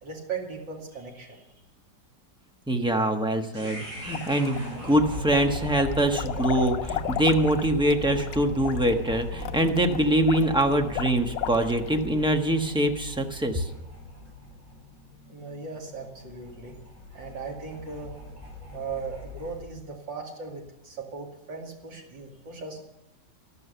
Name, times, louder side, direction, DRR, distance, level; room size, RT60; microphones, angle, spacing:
voice 1, 0.0-1.4 15.3-16.7 17.1-18.1 18.7-22.8, right 4 dB, 85° right, 1 dB, 3.2 m, -38 dB
voice 2, 2.7-13.7, right 1 dB, 5° right, 3 dB, 0.9 m, -24 dB
sound 1, 3.5-19.7, left 2 dB, 45° right, 6.7 m, -39 dB
sound 2, 4.1-4.9 5.3-12.0, left 11 dB, 90° left, 1.5 m, -35 dB
13.0 x 12.0 x 6.8 m, 0.91 s
omnidirectional pair, 2.0 m